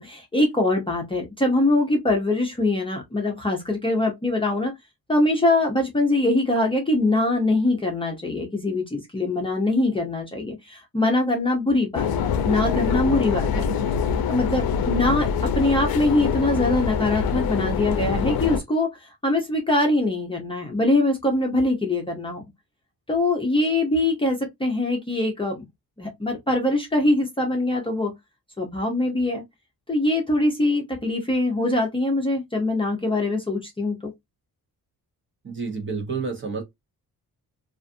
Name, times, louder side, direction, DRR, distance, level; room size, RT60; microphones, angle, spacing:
voice 1, 0.0-4.7 5.1-13.7 14.3-22.4 23.1-25.6 26.0-28.1 28.6-29.4 29.9-34.1, left 2 dB, 15° left, 0.6 m, -23 dB
sound 1, 11.9-18.6, left 7 dB, 70° left, 0.5 m, -24 dB
voice 2, 35.4-36.6, right 4 dB, 30° right, 0.9 m, -29 dB
2.4 x 2.4 x 2.5 m
wide cardioid pair, 140°, 37 cm